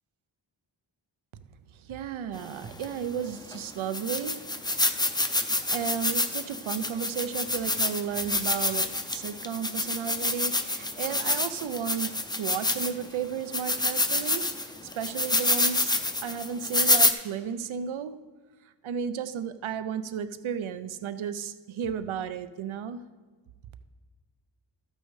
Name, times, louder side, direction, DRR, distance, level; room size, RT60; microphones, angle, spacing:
voice 1, 1.7-4.5 5.2-5.4 5.7-18.2 18.6-23.1, right 8 dB, 90° right, 0.6 m, -34 dB
sound 1, 2.8-2.9 3.5-3.6 3.9-13.1 13.5-17.1, left 2 dB, 10° left, 0.4 m, -27 dB
13.0 x 8.5 x 3.2 m
wide cardioid pair, 105°, 46 cm